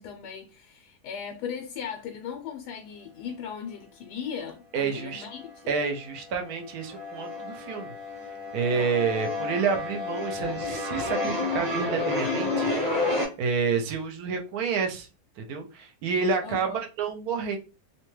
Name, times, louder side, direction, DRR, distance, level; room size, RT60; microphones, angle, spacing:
voice 1, 0.0-5.7 8.7-9.0 16.4-16.8, left 7 dB, 90° left, 1.2 m, -38 dB
voice 2, 4.7-5.2 5.7-7.9 8.5-12.7 13.4-15.1 15.4-17.6, right 5 dB, 75° right, 1.0 m, -29 dB
sound 1, 5.0-5.8 6.1-13.3, left 2 dB, 15° right, 0.8 m, -30 dB
2.8 x 2.2 x 3.1 m
omnidirectional pair, 1.7 m